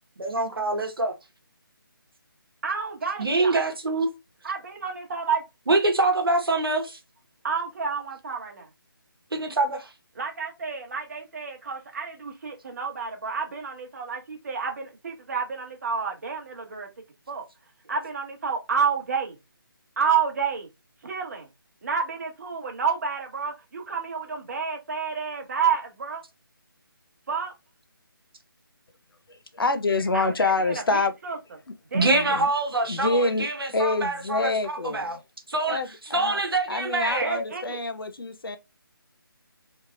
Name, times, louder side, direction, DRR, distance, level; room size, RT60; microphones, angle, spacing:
voice 1, 0.2-1.1 3.2-4.1 5.7-7.0 9.3-9.9 31.9-35.2 35.5-37.4, right 2 dB, 75° right, 1.2 m, -25 dB
voice 2, 2.6-3.6 4.4-5.4 7.4-8.7 10.1-16.9 17.3-17.5 17.9-19.4 20.0-20.7 21.0-21.5 21.8-26.2 27.3-27.5 30.1-31.4 31.9-32.4 37.2-37.8, right 6 dB, 45° right, 1.1 m, -29 dB
voice 3, 29.5-31.1 32.0-32.5 32.9-33.5 33.7-35.2 35.7-36.4 36.7-38.6, left 3 dB, 70° left, 0.7 m, -26 dB
3.3 x 3.2 x 2.4 m
figure-of-eight pair, 155°, 12 cm